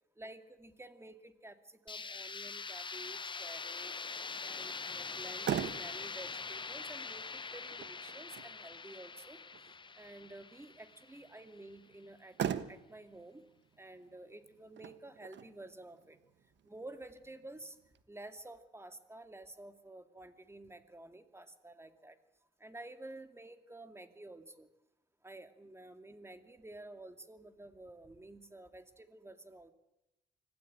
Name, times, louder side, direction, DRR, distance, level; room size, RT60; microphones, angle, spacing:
voice 1, 0.2-3.9 4.4-9.4 9.9-13.5 13.8-16.2 16.6-17.8 18.1-22.2 22.6-24.7 25.2-29.7, right 2 dB, 15° right, 8 dB, 2.4 m, -51 dB
sound 1, 1.9-11.6, left 4 dB, 25° left, 0.7 m, -43 dB
Motor vehicle (road), 5.1-18.0, right 9 dB, 65° right, 1.3 m, -44 dB
25.5 x 17.0 x 8.8 m, 0.92 s
cardioid pair, 90°, 20 cm